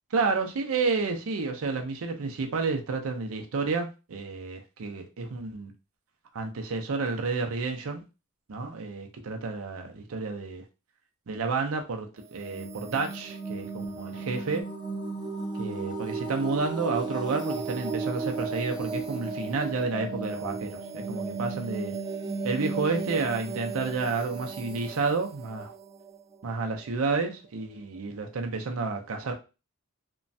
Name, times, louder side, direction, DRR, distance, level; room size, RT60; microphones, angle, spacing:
voice 1, 0.1-5.7 6.3-8.0 8.5-10.6 11.3-14.7 15.6-21.9 22.4-25.7 26.4-29.3, right 4 dB, 75° right, 0.5 m, -30 dB
sound 1, 12.2-26.9, right 4 dB, 20° right, 0.4 m, -35 dB
3.1 x 2.2 x 2.6 m
head